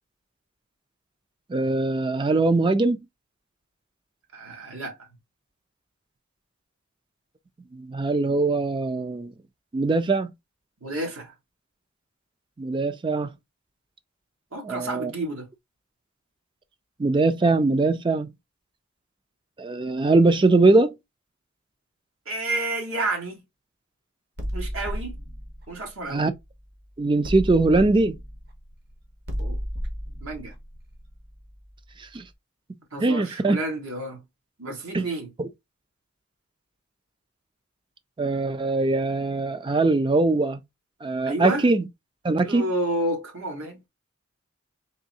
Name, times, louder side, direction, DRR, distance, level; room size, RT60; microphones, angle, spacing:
voice 1, 1.5-3.0 7.7-9.3 9.7-10.3 12.6-13.3 14.6-15.1 17.0-18.3 19.6-20.9 26.1-26.3 27.0-28.1 32.1-32.2 33.0-33.6 34.9-35.0 35.4-35.5 38.2-40.6 41.0-41.9 42.2-42.6, right 3 dB, 20° right, 0.3 m, -21 dB
voice 2, 4.3-5.0 10.8-11.3 14.5-15.5 22.3-23.4 24.5-25.2 25.7-26.2 29.4-29.6 30.2-30.5 32.9-34.2 34.6-35.3 41.2-41.6 42.4-43.8, right 2 dB, 75° right, 1.5 m, -30 dB
sound 1, 24.4-26.7 27.2-31.9, equal, 50° right, 1.1 m, -33 dB
3.7 x 3.1 x 2.7 m
head